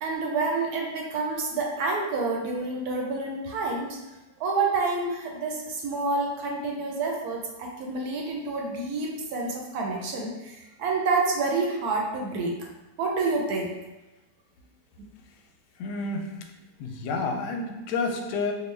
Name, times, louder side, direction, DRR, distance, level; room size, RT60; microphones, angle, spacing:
voice 1, 0.0-4.0 4.4-12.5 13.0-13.7, right 3 dB, 75° right, 0 dB, 1.1 m, -28 dB
voice 2, 15.8-16.5 16.8-18.5, left 3 dB, 90° left, 3 dB, 1.2 m, -30 dB
3.7 x 2.3 x 3.2 m, 1.0 s
omnidirectional pair, 1.7 m